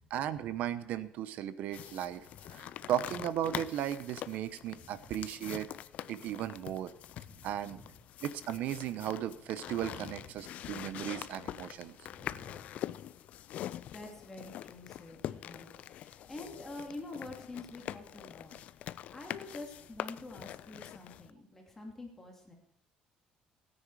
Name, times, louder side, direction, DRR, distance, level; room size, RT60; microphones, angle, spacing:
voice 1, 0.1-5.7 6.1-6.9 7.4-7.8 8.2-12.0, right 11 dB, 65° right, 14 dB, 0.9 m, -36 dB
sound 1, 1.7-21.3, left 12 dB, 55° left, 0.4 m, -44 dB
voice 2, 2.4-2.7 4.7-5.2 7.1-8.0 9.6-10.5 12.1-12.7 13.6-22.5, left 2 dB, 15° left, 0 dB, 2.8 m, -48 dB
17.0 x 9.9 x 4.9 m, 0.72 s
cardioid pair, 160°, 3 cm